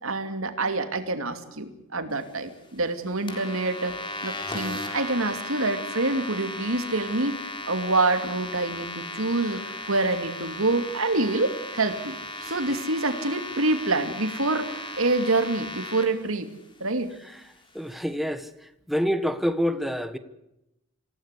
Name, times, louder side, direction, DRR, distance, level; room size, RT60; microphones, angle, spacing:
voice 1, 0.0-4.0 4.2-9.6 9.9-12.2 12.4-16.5 16.8-17.1, right 2 dB, 70° right, 2.7 m, -26 dB
sound 1, 3.3-16.0, left 2 dB, 25° left, 3.9 m, -36 dB
voice 2, 17.7-18.5 18.9-20.2, equal, ahead, 1.3 m, -27 dB
26.5 x 17.0 x 8.4 m
head